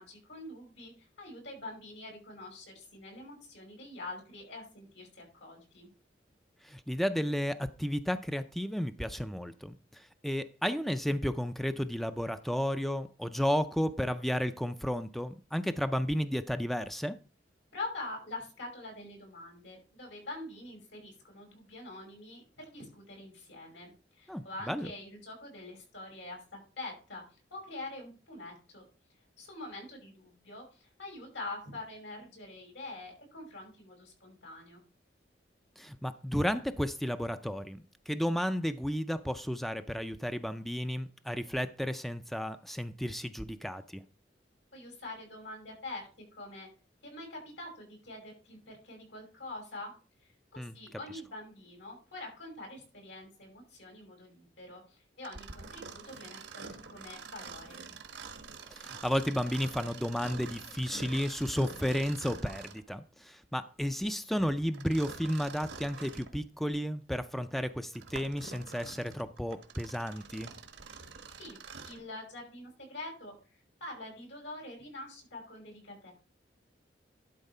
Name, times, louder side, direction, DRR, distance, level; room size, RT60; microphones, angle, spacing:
voice 1, 0.0-5.9 17.7-27.2 27.5-28.8 29.4-34.8 44.7-46.7 47.0-49.9 50.2-57.8 71.4-76.1, left 2 dB, 85° left, 1 dB, 5.6 m, -45 dB
voice 2, 6.6-17.2 24.3-24.9 35.8-44.0 50.6-50.7 58.7-70.5, equal, ahead, 10 dB, 0.4 m, -33 dB
Mechanisms, 55.2-62.9 64.7-66.3 66.9-67.0 67.7-72.1, right 4 dB, 85° right, 1.3 m, -47 dB
11.5 x 4.1 x 5.4 m, 0.34 s
head